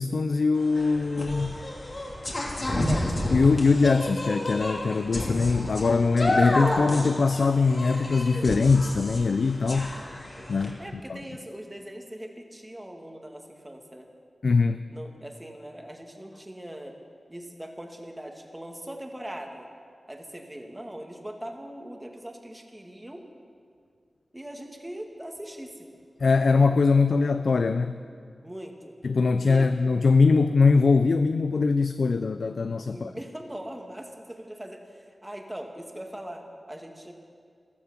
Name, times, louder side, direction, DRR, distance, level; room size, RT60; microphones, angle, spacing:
voice 1, 0.0-1.6 3.3-10.0 10.5-10.8 11.1-11.2 14.4-14.8 26.2-28.0 29.0-33.1, left 4 dB, 75° left, 10 dB, 0.5 m, -22 dB
sound 1, 0.6-10.7, left 1 dB, 45° left, 3.1 m, -30 dB
voice 2, 2.8-3.3 10.8-14.1 14.9-17.0 17.3-19.7 20.1-23.2 24.3-25.9 28.4-29.0 29.4-29.7 32.9-37.1, right 1 dB, 15° right, 2 dB, 2.2 m, -41 dB
14.5 x 13.5 x 7.4 m, 2.1 s
cardioid pair, 55°, 0 cm